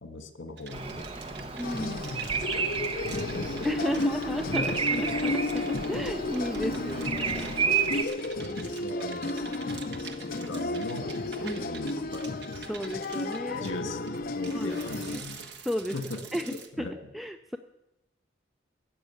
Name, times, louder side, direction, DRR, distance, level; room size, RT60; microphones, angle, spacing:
voice 1, 0.0-1.5 2.5-3.2 3.4-3.7 3.9-4.1 4.5-5.0 6.8-7.1 7.3-7.6 8.4-9.3 10.4-11.1 11.4-12.3 13.5-15.5 15.9-16.2 16.8-16.9, left 2 dB, 85° left, 7 dB, 1.7 m, -39 dB
sound 1, 0.6-16.7, right 5 dB, 60° right, 1.3 m, -46 dB
Bird vocalization bird call bird song, 0.7-8.0, right 5 dB, 30° right, 0.8 m, -32 dB
sound 2, 1.6-15.2, left 2 dB, 50° left, 0.6 m, -33 dB
voice 2, 1.6-2.0 3.6-7.5 11.4-11.7 12.7-13.7 14.5-15.2 15.6-16.0 16.3-17.6, equal, ahead, 7 dB, 0.4 m, -34 dB
13.5 x 7.3 x 9.6 m, 0.94 s
head